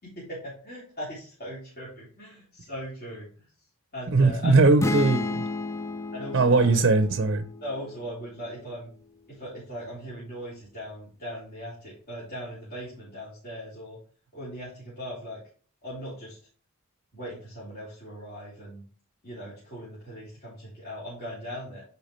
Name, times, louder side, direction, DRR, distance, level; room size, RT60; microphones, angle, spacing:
voice 1, 0.0-3.5 3.9-4.6 6.1-6.8 7.6-8.9 9.3-14.0 14.3-15.4 15.8-16.4 17.1-18.8 19.2-21.8, equal, 45° left, 3.6 m, -39 dB
voice 2, 4.1-5.5 6.3-7.4, right 3 dB, 50° right, 0.6 m, -20 dB
sound 1, 4.8-8.5, left 3 dB, 15° left, 0.3 m, -33 dB
10.5 x 4.6 x 3.1 m
head